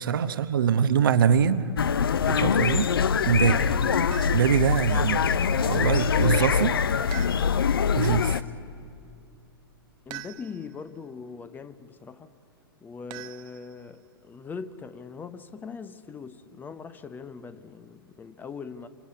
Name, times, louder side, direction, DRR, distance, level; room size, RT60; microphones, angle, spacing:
voice 1, 0.0-1.7 2.3-2.9 3.3-3.7 4.3-6.8 7.9-8.4, right 7 dB, 60° right, 11 dB, 1.0 m, -23 dB
sound 1, 1.8-8.4, left 6 dB, 65° left, 0.7 m, -24 dB
sound 2, 3.4-4.6 9.5-9.6, left 1 dB, 5° right, 2.1 m, -39 dB
sound 3, 4.1-4.6 7.1-7.8 10.1-10.8 13.1-14.0, right 15 dB, 35° right, 1.0 m, -43 dB
voice 2, 10.1-12.3 12.8-18.9, left 5 dB, 15° left, 12 dB, 0.9 m, -41 dB
27.5 x 25.5 x 8.6 m, 2.5 s
figure-of-eight pair, 105°, 13 cm